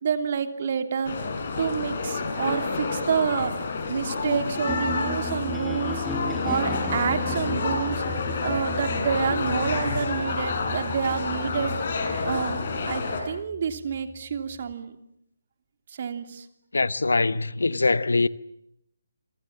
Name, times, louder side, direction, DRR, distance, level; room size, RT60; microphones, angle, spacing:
voice 1, 0.0-1.2 1.6-6.1 6.4-8.0 8.4-11.7 12.2-12.6 12.9-15.0 15.9-16.5, right 7 dB, 45° right, 3.0 m, -28 dB
sound 1, 1.0-13.2, left 4 dB, 50° left, 7.3 m, -29 dB
sound 2, 4.6-14.7, left 2 dB, 5° left, 2.8 m, -36 dB
voice 2, 16.7-18.3, left 3 dB, 75° left, 1.1 m, -23 dB
28.5 x 25.5 x 7.4 m
figure-of-eight pair, 145°, 0 cm